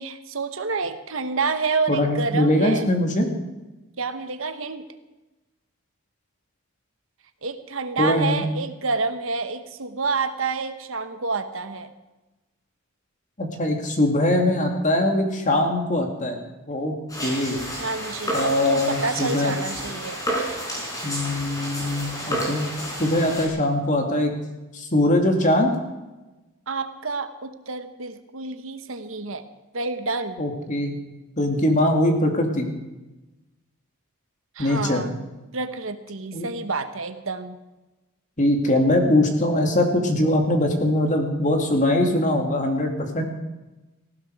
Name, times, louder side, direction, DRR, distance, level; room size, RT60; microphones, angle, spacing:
voice 1, 0.0-2.8 4.0-4.8 7.4-11.9 17.8-20.2 26.7-29.4 29.7-30.5 34.5-37.6, right 4 dB, 65° right, 9 dB, 1.1 m, -28 dB
voice 2, 1.9-3.3 8.0-8.4 13.4-16.4 16.7-17.0 17.2-17.6 18.3-19.5 21.0-22.7 23.0-24.3 24.7-25.7 30.4-31.0 31.4-32.7 34.6-35.0 36.3-36.5 38.4-43.2, left 1 dB, 35° left, 3 dB, 2.4 m, -22 dB
sound 1, 17.1-23.5, equal, 15° left, 4.5 m, -30 dB
19.0 x 15.5 x 4.8 m, 1.1 s
head